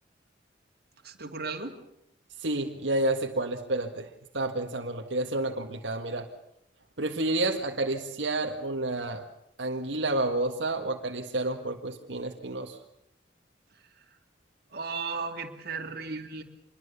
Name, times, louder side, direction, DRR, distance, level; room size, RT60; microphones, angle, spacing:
voice 1, 1.0-1.8 14.0-14.1 14.7-16.4, right 4 dB, 60° right, 3 dB, 2.7 m, -35 dB
voice 2, 2.4-4.1 4.3-6.3 7.0-9.2 9.6-12.8, right 2 dB, 90° right, 2 dB, 1.7 m, -30 dB
26.0 x 21.5 x 6.9 m, 0.78 s
head